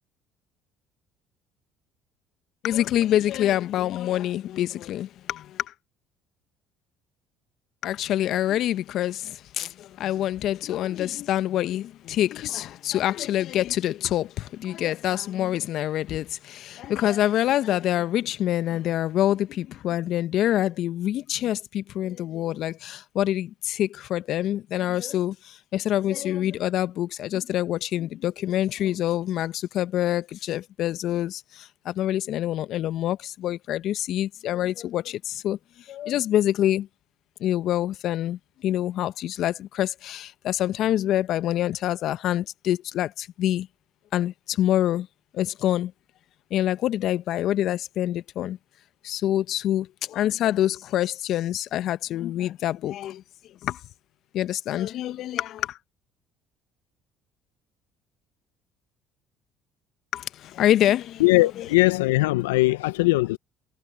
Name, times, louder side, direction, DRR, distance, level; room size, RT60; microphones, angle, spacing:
voice 1, 2.6-5.4 7.8-9.2 9.6-9.7 10.0-14.3 14.6-25.3 25.7-31.4 31.9-35.2 35.4-35.6 35.9-36.9 37.4-38.4 38.6-43.7 44.1-45.1 45.4-45.9 46.5-48.6 49.0-49.9 50.1-53.2 54.3-55.6 60.1-60.2 60.6-61.2, left 12 dB, 60° left, 1.0 m, -26 dB
voice 2, 61.2-63.4, left 21 dB, 85° left, 1.0 m, -20 dB
hypercardioid pair, 60°, 0 cm